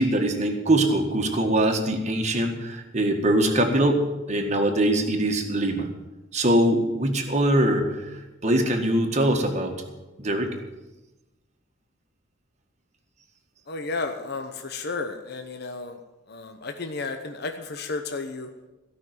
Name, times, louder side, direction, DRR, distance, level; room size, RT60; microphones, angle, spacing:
voice 1, 0.0-5.9 6.3-9.8 10.2-10.6, right 1 dB, 35° right, 3 dB, 1.7 m, -23 dB
voice 2, 13.7-16.0 16.3-18.5, left 3 dB, 55° left, 5 dB, 0.9 m, -32 dB
16.5 x 5.9 x 9.2 m, 1.1 s
head